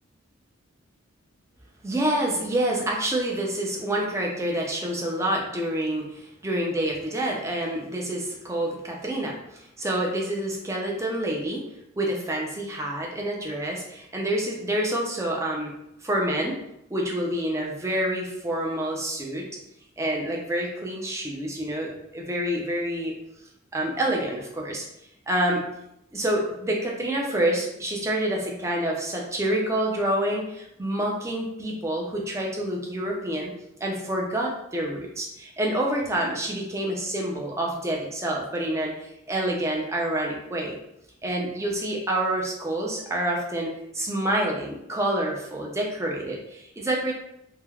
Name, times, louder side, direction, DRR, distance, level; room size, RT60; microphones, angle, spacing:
voice 1, 1.8-11.6 12.0-15.7 16.0-16.6 16.9-19.5 20.0-23.1 23.7-24.8 25.3-25.6 26.1-33.5 33.8-40.8 41.2-47.1, right 1 dB, 15° right, -1 dB, 0.4 m, -27 dB
3.2 x 2.1 x 2.3 m, 0.81 s
head